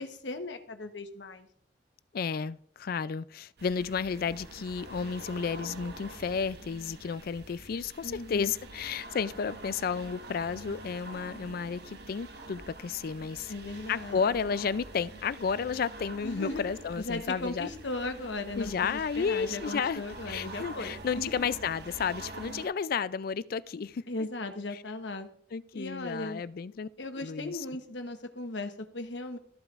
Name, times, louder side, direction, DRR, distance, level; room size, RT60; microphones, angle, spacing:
voice 1, 0.0-1.5 8.0-8.5 13.5-14.2 16.2-16.7 17.0-21.5 24.1-25.3 25.7-26.4 27.0-29.4, left 2 dB, 75° left, 1.1 m, -37 dB
voice 2, 2.1-13.5 13.9-17.7 18.6-24.0 24.7-24.8 25.5-26.9 27.2-27.7, left 6 dB, 55° left, 0.4 m, -32 dB
sound 1, 3.6-22.7, right 2 dB, 60° right, 1.2 m, -46 dB
14.0 x 7.9 x 2.5 m
head